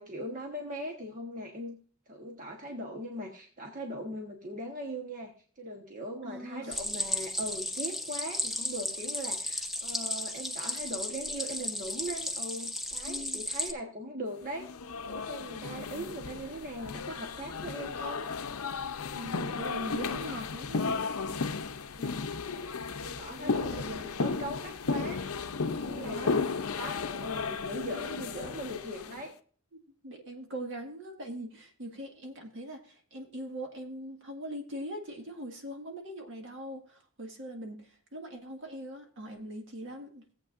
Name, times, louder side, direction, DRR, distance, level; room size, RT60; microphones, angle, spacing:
voice 1, 0.0-1.8 2.1-14.7 15.0-18.3 22.0-22.4 23.0-25.2 25.6-26.4 26.7-29.3, equal, 35° right, 0 dB, 1.2 m, -40 dB
voice 2, 6.2-6.8 13.0-13.5 17.4-17.5 19.1-21.0 23.4-24.2 26.0-27.0 30.0-40.2, right 1 dB, 55° right, 3 dB, 1.8 m, -41 dB
Stream, 6.7-13.7, left 1 dB, ahead, 0.8 m, -34 dB
sound 1, 14.5-29.2, left 4 dB, 75° left, 0.6 m, -34 dB
17.0 x 8.0 x 2.5 m, 0.44 s
head